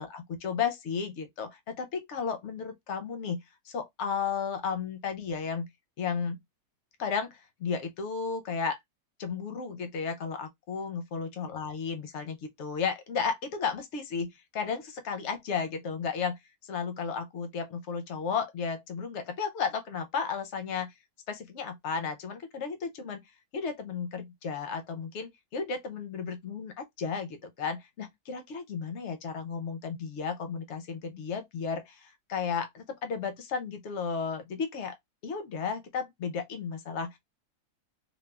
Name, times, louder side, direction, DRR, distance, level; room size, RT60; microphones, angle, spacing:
voice 1, 0.0-3.4 3.7-5.7 6.0-6.4 7.0-8.8 9.2-16.4 16.7-20.9 21.3-23.2 23.5-35.0 35.2-37.2, left 6 dB, 65° left, 0.7 m, -34 dB
3.4 x 2.1 x 2.2 m
omnidirectional pair, 1.7 m